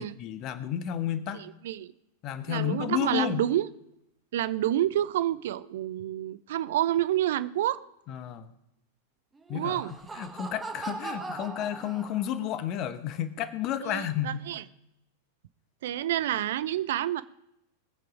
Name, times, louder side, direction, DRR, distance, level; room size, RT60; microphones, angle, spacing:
voice 1, 0.2-1.4 2.2-3.4 8.1-8.5 9.5-9.8 10.1-14.4, left 10 dB, 40° left, 13 dB, 1.1 m, -31 dB
voice 2, 1.3-1.9 2.5-3.7 4.3-7.8 9.5-10.0 13.8-14.6 15.8-17.2, right 12 dB, 55° right, 16 dB, 0.5 m, -28 dB
Laughter, 9.4-12.5, right 3 dB, 10° right, 1.7 m, -40 dB
20.0 x 7.7 x 4.9 m, 0.81 s
figure-of-eight pair, 90°, 0 cm